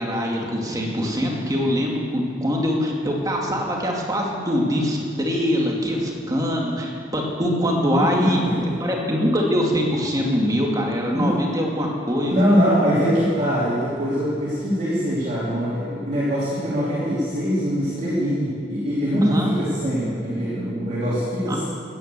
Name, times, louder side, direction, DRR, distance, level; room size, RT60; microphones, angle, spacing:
voice 1, 0.0-12.3 19.2-19.6 21.5-21.6, equal, 20° right, -1 dB, 2.2 m, -23 dB
voice 2, 8.0-8.5 11.1-11.3 12.3-21.6, equal, 40° right, -9 dB, 3.8 m, -22 dB
16.0 x 10.5 x 6.8 m, 2.6 s
head